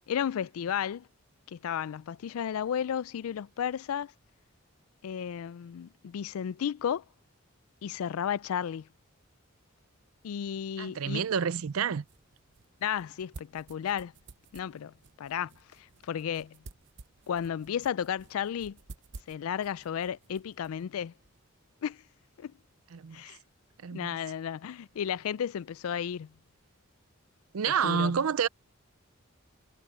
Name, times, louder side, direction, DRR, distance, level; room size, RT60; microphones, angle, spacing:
voice 1, 0.1-1.1 1.5-4.1 5.0-7.0 7.8-8.9 10.2-11.2 12.8-14.1 14.5-16.6 17.3-18.8 19.3-21.1 21.8-22.0 22.4-22.5 23.1-23.4 23.9-26.3 27.7-28.1, left 8 dB, 85° left, 0.3 m, -33 dB
voice 2, 10.8-12.0 22.9-23.2 23.8-24.2 27.5-28.5, right 7 dB, 85° right, 0.5 m, -29 dB
sound 1, 11.7-21.5, right 3 dB, 55° right, 0.8 m, -53 dB
head